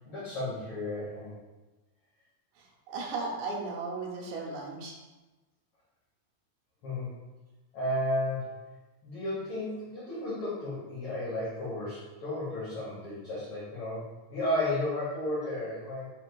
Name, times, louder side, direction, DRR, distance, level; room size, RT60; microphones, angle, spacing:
voice 1, 0.0-1.3 6.8-7.1 7.7-8.5 9.0-14.0 14.3-16.1, left 1 dB, 75° left, -9 dB, 1.2 m, -33 dB
voice 2, 2.9-4.9, right 3 dB, 80° right, -1 dB, 2.3 m, -35 dB
5.1 x 3.2 x 2.2 m, 1.2 s
omnidirectional pair, 3.8 m